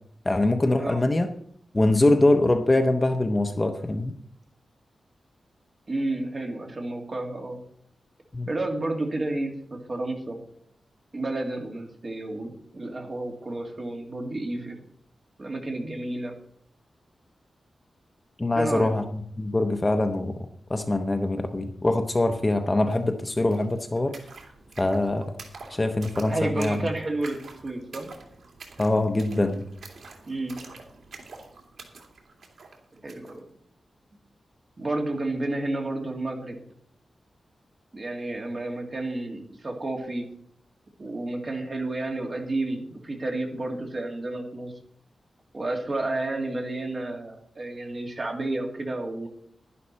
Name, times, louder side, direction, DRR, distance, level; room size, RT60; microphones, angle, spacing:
voice 1, 0.2-1.3 1.7-4.2 8.3-8.5 18.4-20.4 20.7-24.2 24.8-25.3 25.7-26.8 28.8-29.7, left 2 dB, 20° left, 6 dB, 0.7 m, -23 dB
voice 2, 5.9-7.6 8.5-10.4 11.1-14.8 15.4-16.3 18.6-18.9 26.3-27.4 27.6-28.1 30.3-30.6 32.9-33.4 34.8-36.6 37.9-40.3 41.0-44.7 45.5-49.3, right 2 dB, 30° right, 1 dB, 2.2 m, -31 dB
sound 1, 22.9-23.0 23.2-33.4, right 4 dB, 80° right, 2.7 m, -47 dB
11.5 x 11.0 x 4.3 m, 0.66 s
wide cardioid pair, 160°, 0 cm